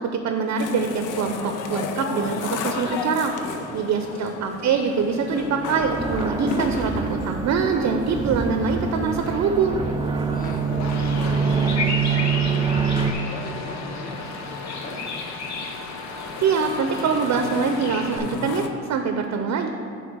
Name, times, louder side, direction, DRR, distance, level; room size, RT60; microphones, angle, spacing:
voice 1, 0.0-3.3 3.7-9.8 16.4-19.7, right 5 dB, 60° right, 6 dB, 0.6 m, -24 dB
sound 1, 0.6-18.7, left 6 dB, 85° left, 0.6 m, -35 dB
voice 2, 3.4-3.9 10.3-10.8 11.1-12.4 12.8-15.3, left 1 dB, 30° left, 1 dB, 1.2 m, -39 dB
sound 2, 5.3-13.1, right 6 dB, 15° right, 0.3 m, -25 dB
Bird vocalization bird call bird song, 10.8-18.2, left 4 dB, 65° left, 0.9 m, -33 dB
7.7 x 3.7 x 6.6 m, 2.4 s
cardioid pair, 90°, 30 cm